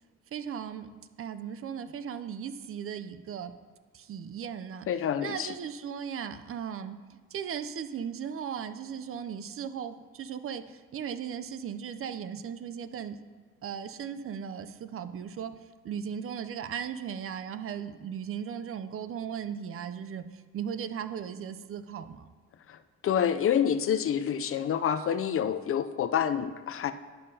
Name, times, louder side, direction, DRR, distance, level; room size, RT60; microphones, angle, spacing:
voice 1, 0.3-0.9 1.2-3.5 3.9-4.9 5.2-13.2 13.6-15.5 15.8-22.3, right 8 dB, 45° right, 11 dB, 0.5 m, -37 dB
voice 2, 4.9-5.5 22.7-26.9, left 8 dB, 50° left, 11 dB, 0.4 m, -28 dB
11.5 x 5.4 x 2.7 m, 1.4 s
cardioid pair, 90°, 30 cm